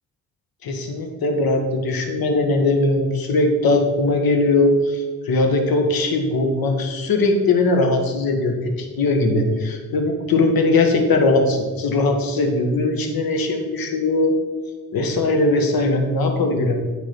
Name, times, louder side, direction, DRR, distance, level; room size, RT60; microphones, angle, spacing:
voice 1, 0.6-14.3 14.9-16.8, left 2 dB, 55° left, 4 dB, 1.5 m, -20 dB
9.0 x 3.8 x 5.8 m, 1.4 s
hypercardioid pair, 45°, 42 cm